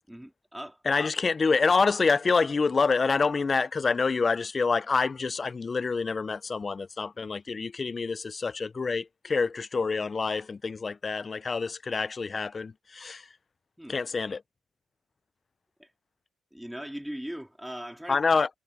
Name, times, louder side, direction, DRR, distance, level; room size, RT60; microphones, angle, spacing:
voice 1, 0.1-0.8 13.8-14.0 15.8-15.9 16.5-18.2, equal, 5° right, 3.2 m, -39 dB
voice 2, 0.9-13.2 13.9-14.4 18.1-18.5, left 4 dB, 35° left, 0.5 m, -27 dB
cardioid pair, 90°, 0 cm